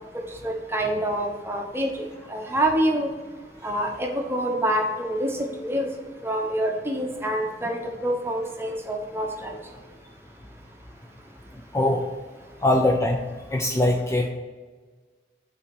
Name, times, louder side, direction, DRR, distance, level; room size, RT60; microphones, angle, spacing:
voice 1, 0.4-3.1 3.6-5.9 6.2-9.6, right 1 dB, 15° right, 1 dB, 0.9 m, -26 dB
voice 2, 12.6-13.2 13.5-14.3, left 1 dB, 15° left, 2 dB, 0.4 m, -21 dB
5.7 x 4.1 x 6.0 m, 1.4 s
head